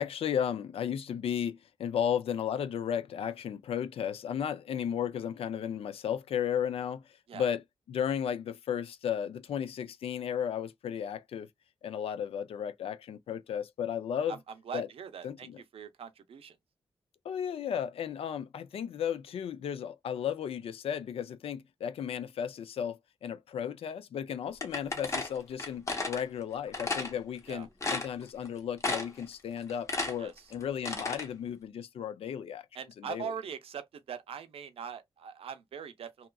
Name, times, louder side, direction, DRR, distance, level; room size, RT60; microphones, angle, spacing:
voice 1, 0.0-7.6 7.9-11.5 11.8-14.4 14.7-14.9 15.2-15.6 17.2-32.7 33.0-33.3, left 8 dB, 90° left, 0.4 m, -34 dB
voice 2, 14.7-15.5 15.7-16.6 27.5-27.7 30.2-30.5 32.7-36.3, right 7 dB, 90° right, 0.5 m, -41 dB
sound 1, 24.6-26.2 26.7-27.1 27.5-27.6 27.8-28.5 28.8-29.2 29.6-31.3, left 3 dB, 30° left, 0.8 m, -33 dB
2.8 x 2.3 x 2.2 m
wide cardioid pair, 145°, 10 cm